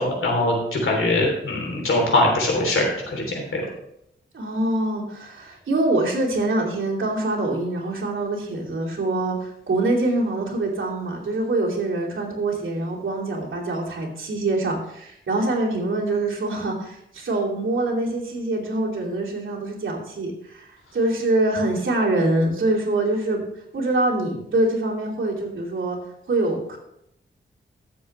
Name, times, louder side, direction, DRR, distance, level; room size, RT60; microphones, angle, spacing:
voice 1, 0.0-3.6, left 2 dB, 85° left, 0 dB, 3.3 m, -22 dB
voice 2, 4.3-23.4 23.7-26.0 26.3-26.8, right 2 dB, 75° right, -3 dB, 2.8 m, -24 dB
14.0 x 7.4 x 3.3 m, 0.76 s
wide cardioid pair, 110°, 20 cm